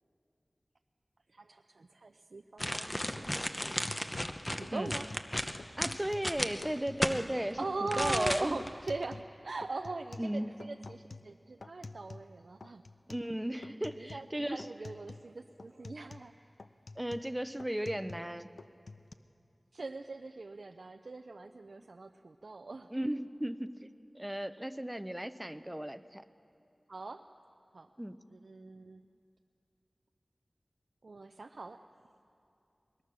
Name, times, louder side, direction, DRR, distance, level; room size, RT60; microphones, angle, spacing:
voice 1, 1.3-3.8 4.5-5.1 7.6-12.8 14.0-16.3 19.7-22.9 26.9-27.2 27.7-27.9 28.3-29.0 31.0-31.8, right 3 dB, 85° right, 6 dB, 0.5 m, -41 dB
sound 1, 2.6-7.2 7.9-8.7 9.0-9.1, left 1 dB, 20° left, 0.8 m, -34 dB
sound 2, 3.1-3.3 3.6-5.3 5.6-6.3 6.6-7.3 7.6-9.3 9.6-12.3 12.6-13.3 13.6-14.3 14.6-15.3 15.6-18.3 18.6-19.1, left 3 dB, 90° left, 0.5 m, -49 dB
voice 2, 5.8-8.6 10.2-10.5 13.1-14.7 17.0-18.5 21.8-21.9 22.9-23.7 24.1-26.2 28.0-28.2, right 1 dB, 10° right, 11 dB, 0.7 m, -35 dB
21.0 x 20.5 x 6.2 m, 2.6 s
wide cardioid pair, 60°, 0 cm